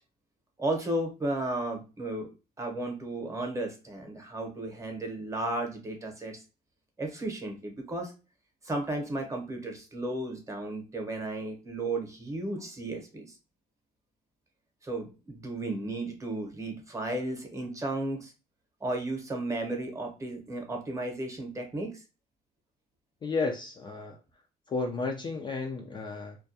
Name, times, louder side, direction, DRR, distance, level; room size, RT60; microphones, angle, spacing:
voice 1, 0.6-2.3 2.6-6.4 7.0-8.1 8.6-13.4 14.8-18.3 18.8-22.0, right 2 dB, 20° right, 0.8 m, -34 dB
voice 2, 23.2-24.2 24.7-26.4, left 4 dB, 25° left, 0.4 m, -32 dB
2.3 x 2.2 x 2.6 m
cardioid pair, 110°, 17 cm